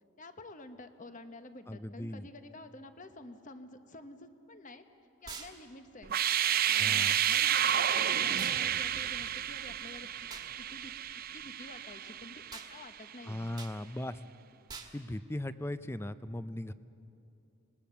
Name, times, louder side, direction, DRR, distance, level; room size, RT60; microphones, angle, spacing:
voice 1, 0.2-4.8 5.2-6.1 6.6-10.3 10.6-10.9 11.3-13.5, left 2 dB, 35° left, 9 dB, 1.0 m, -50 dB
voice 2, 1.7-2.3 6.8-7.1 13.3-14.2 14.9-16.7, left 1 dB, 10° left, 13 dB, 0.4 m, -38 dB
sound 1, 5.3-5.5 8.4-8.6 10.3-10.5 12.5-12.7 13.6-13.8 14.7-14.9, right 5 dB, 20° right, 1.6 m, -45 dB
sound 2, 6.0-12.9, right 10 dB, 45° right, 0.5 m, -30 dB
25.5 x 20.0 x 7.0 m, 2.8 s
head